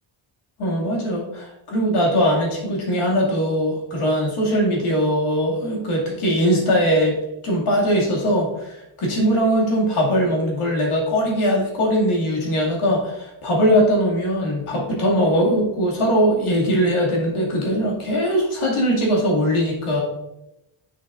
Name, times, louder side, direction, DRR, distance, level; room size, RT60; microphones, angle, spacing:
voice 1, 0.6-7.2 7.4-20.0, equal, 85° left, -3 dB, 2.5 m, -20 dB
8.1 x 6.2 x 2.5 m, 0.89 s
cardioid pair, 90°, 49 cm